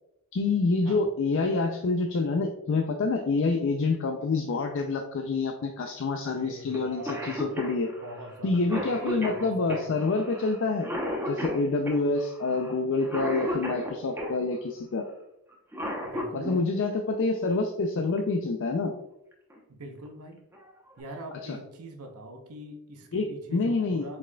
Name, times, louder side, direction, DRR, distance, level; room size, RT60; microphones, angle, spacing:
voice 1, 0.3-7.9 8.4-10.9 11.3-15.1 16.3-18.9 21.5-21.6 23.1-24.2, left 3 dB, 55° left, 3 dB, 0.4 m, -27 dB
voice 2, 6.2-7.5 7.9-9.9 16.0-16.7 19.7-20.4 21.0-24.2, right 1 dB, 80° right, 4 dB, 0.8 m, -43 dB
Cough, 6.7-6.8 7.1-14.4 15.5-16.6 18.2-18.3 19.3-19.6 20.1-20.2 20.5-21.0, left 1 dB, 10° right, 0.7 m, -34 dB
4.8 x 4.2 x 2.2 m, 0.81 s
head